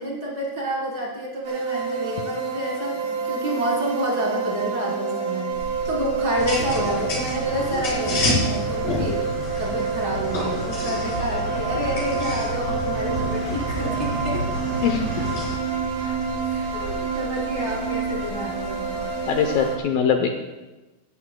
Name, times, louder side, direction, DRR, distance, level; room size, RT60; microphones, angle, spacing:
voice 1, 0.0-9.2 9.6-14.4 16.4-19.0, equal, 25° right, -5 dB, 3.8 m, -29 dB
sound 1, 1.4-19.8, right 5 dB, 55° right, 2.1 m, -28 dB
sound 2, 5.5-19.7, right 3 dB, 75° right, 6.9 m, -38 dB
sound 3, 6.4-15.5, left 1 dB, 55° left, 5.8 m, -29 dB
voice 2, 19.3-20.3, left 7 dB, 80° left, 4 dB, 2.0 m, -21 dB
17.0 x 13.5 x 2.2 m, 1.1 s
omnidirectional pair, 4.9 m